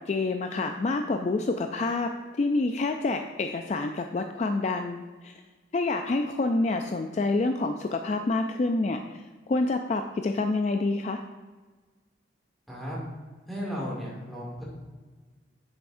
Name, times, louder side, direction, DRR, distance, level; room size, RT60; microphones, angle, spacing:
voice 1, 0.1-2.1 2.4-5.4 5.7-11.2, left 3 dB, 35° left, 5 dB, 0.3 m, -27 dB
voice 2, 12.7-13.0 13.5-14.6, equal, ahead, -6 dB, 2.3 m, -35 dB
8.8 x 7.1 x 2.6 m, 1.4 s
head